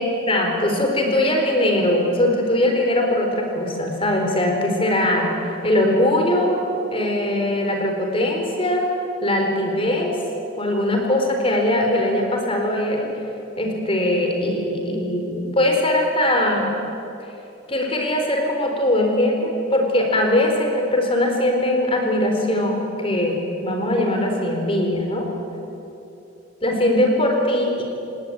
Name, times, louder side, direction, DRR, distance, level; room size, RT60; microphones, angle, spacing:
voice 1, 0.3-6.6 6.9-8.8 9.2-10.2 10.6-13.1 13.6-16.7 17.7-25.3 26.6-27.8, left 1 dB, 25° left, 2 dB, 4.2 m, -21 dB
29.5 x 19.0 x 9.0 m, 2.9 s
head